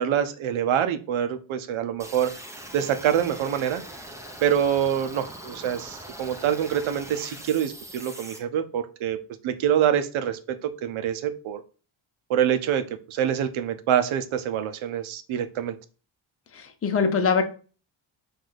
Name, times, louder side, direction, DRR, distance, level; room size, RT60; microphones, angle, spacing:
voice 1, 0.0-2.3 2.7-3.8 4.4-9.2 9.4-11.6 12.3-15.8, right 9 dB, 80° right, 9 dB, 0.7 m, -25 dB
sound 1, 2.0-8.4, right 1 dB, 5° right, 0.7 m, -42 dB
voice 2, 16.5-17.4, left 5 dB, 30° left, 6 dB, 0.7 m, -23 dB
4.7 x 2.6 x 3.9 m, 0.36 s
cardioid pair, 100°, 48 cm